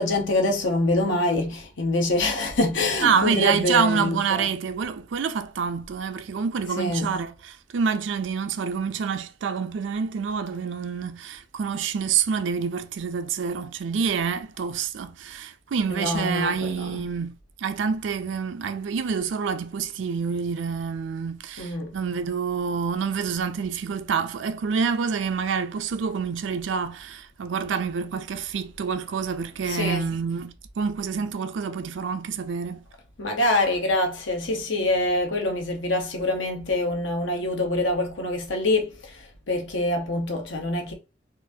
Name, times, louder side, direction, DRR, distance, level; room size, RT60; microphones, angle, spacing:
voice 1, 0.0-4.4 6.8-7.2 15.9-17.0 21.6-21.9 29.7-30.1 33.2-38.9 39.5-40.9, left 2 dB, 70° left, 0.9 m, -25 dB
voice 2, 3.0-32.8, right 6 dB, 70° right, 0.4 m, -27 dB
3.9 x 2.5 x 2.7 m
head